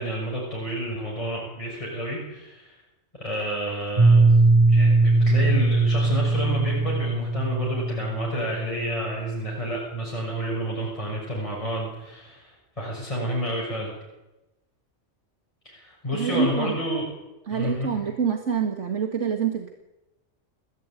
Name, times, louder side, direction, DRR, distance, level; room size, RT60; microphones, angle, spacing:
voice 1, 0.0-2.8 3.2-4.3 4.7-13.9 15.6-17.0 17.5-17.9, equal, 25° left, -4 dB, 6.8 m, -30 dB
Piano, 4.0-9.6, right 3 dB, 30° right, 6.0 m, -20 dB
voice 2, 16.1-16.8 17.5-19.7, right 6 dB, 80° right, 4 dB, 2.1 m, -26 dB
29.0 x 15.5 x 9.1 m, 1.0 s
omnidirectional pair, 1.2 m